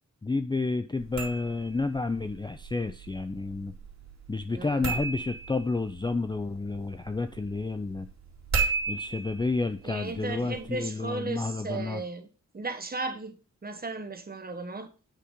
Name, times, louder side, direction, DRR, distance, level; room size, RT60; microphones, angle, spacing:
voice 1, 0.2-3.7 4.3-8.1 8.9-12.0, left 3 dB, 15° left, 0.4 m, -30 dB
sound 1, 1.0-10.8, right 4 dB, 55° right, 2.4 m, -36 dB
voice 2, 4.5-4.9 9.8-12.3 12.5-13.4 13.6-14.9, right 3 dB, 30° right, 1.1 m, -35 dB
8.5 x 5.0 x 3.7 m
wide cardioid pair, 100°, 32 cm